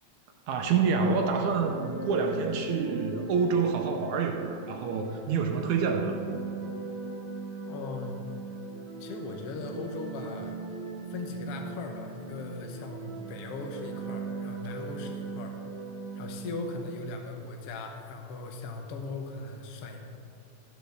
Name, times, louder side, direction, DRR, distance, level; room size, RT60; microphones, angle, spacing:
voice 1, 0.5-6.2, right 5 dB, 75° right, 3 dB, 2.0 m, -27 dB
sound 1, 1.2-16.9, right 4 dB, 55° right, 1.2 m, -39 dB
voice 2, 7.7-8.2 9.0-10.6 11.1-15.6 16.1-20.0, left 3 dB, 65° left, 4 dB, 1.6 m, -39 dB
13.5 x 5.1 x 6.4 m, 2.6 s
omnidirectional pair, 3.6 m